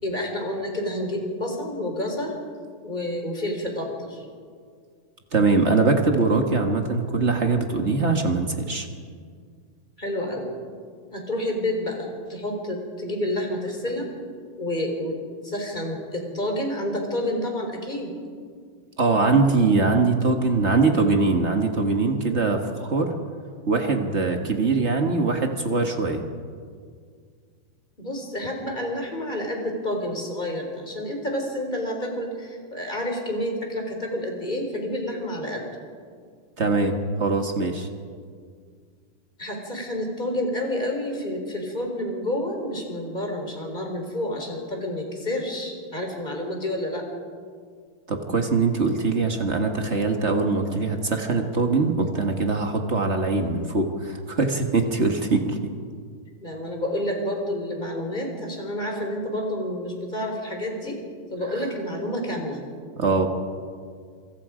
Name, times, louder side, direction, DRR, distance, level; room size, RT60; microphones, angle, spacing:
voice 1, 0.0-2.4 2.8-4.2 10.0-10.5 11.1-14.1 14.6-18.1 28.0-35.6 39.4-47.0 56.4-61.0 61.3-62.6, left 1 dB, 15° left, 2 dB, 3.9 m, -29 dB
voice 2, 5.3-8.9 19.0-23.1 23.7-26.2 36.6-37.9 48.1-55.6 63.0-63.3, right 3 dB, 45° right, 4 dB, 0.9 m, -22 dB
27.5 x 25.0 x 5.1 m, 2.1 s
omnidirectional pair, 3.7 m